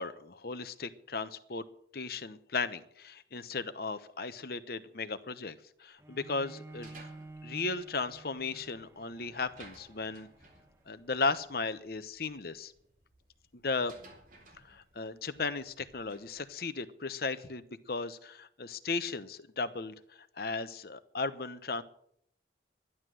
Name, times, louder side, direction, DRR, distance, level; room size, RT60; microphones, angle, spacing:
voice 1, 0.0-1.6 1.9-7.0 7.4-10.3 10.9-12.7 13.6-13.9 14.7-19.9 20.4-21.8, left 4 dB, 60° left, 13 dB, 0.9 m, -36 dB
Bowed string instrument, 6.0-11.2, right 2 dB, 15° right, 1.0 m, -52 dB
sound 1, 6.7-16.4, right 3 dB, 50° right, 4.0 m, -59 dB
12.0 x 11.0 x 7.7 m, 0.67 s
head